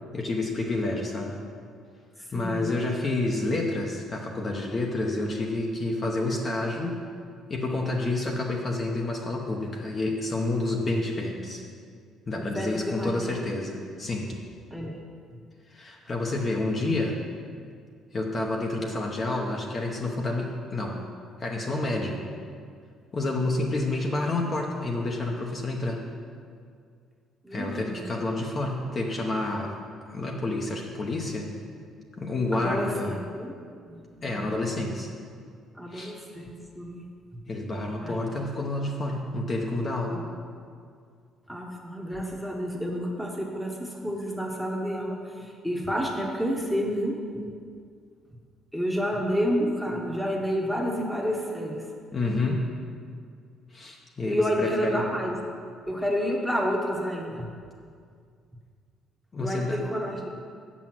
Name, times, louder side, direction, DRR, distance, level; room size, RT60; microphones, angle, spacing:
voice 1, 0.1-1.4 2.3-7.0 7.5-11.6 12.3-14.4 15.7-17.2 18.1-21.0 21.4-22.2 23.1-26.0 27.5-29.7 30.1-31.5 32.2-33.1 34.2-35.1 35.9-36.1 37.5-40.2 52.1-52.7 53.7-55.0 59.3-59.8, left 2 dB, 30° left, 0 dB, 0.9 m, -29 dB
voice 2, 2.3-2.7 12.3-13.4 14.7-15.0 27.4-28.1 32.5-33.5 33.9-34.4 35.7-37.0 38.0-38.2 40.1-40.2 41.5-47.2 48.7-51.9 54.2-55.4 55.9-57.5 59.4-60.3, equal, ahead, -1 dB, 1.1 m, -30 dB
8.3 x 6.2 x 7.5 m, 2.2 s
cardioid pair, 150°, 0 cm